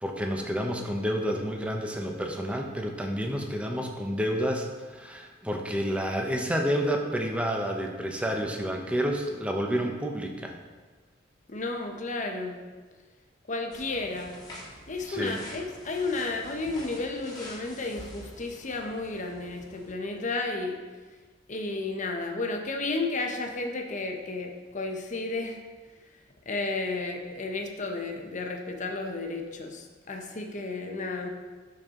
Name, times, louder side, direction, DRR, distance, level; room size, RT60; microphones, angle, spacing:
voice 1, 0.0-10.6 15.1-15.4, equal, 5° right, 2 dB, 0.8 m, -29 dB
voice 2, 11.5-12.6 13.5-14.4 14.9-20.8 21.5-25.6 26.5-31.3, left 3 dB, 40° left, 3 dB, 0.9 m, -32 dB
sound 1, 13.7-19.9, left 1 dB, 20° left, 1.6 m, -46 dB
12.0 x 4.5 x 3.7 m, 1.4 s
head